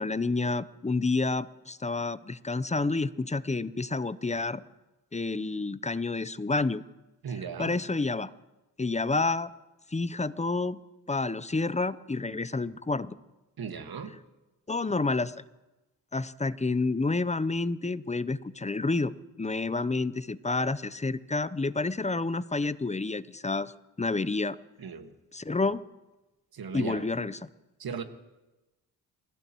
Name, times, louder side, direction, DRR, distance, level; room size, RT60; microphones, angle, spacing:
voice 1, 0.0-4.6 5.1-6.8 7.6-8.3 8.8-9.5 9.9-10.8 11.1-13.2 14.7-15.3 16.1-23.7 24.0-24.6 25.3-25.8 26.7-27.4, left 3 dB, 15° left, 16 dB, 0.8 m, -29 dB
voice 2, 7.2-7.8 13.6-14.2 24.8-25.1 26.5-27.1 27.8-28.0, right 6 dB, 55° right, 7 dB, 1.9 m, -37 dB
29.0 x 16.0 x 3.1 m, 1.0 s
supercardioid pair, 45°, 43 cm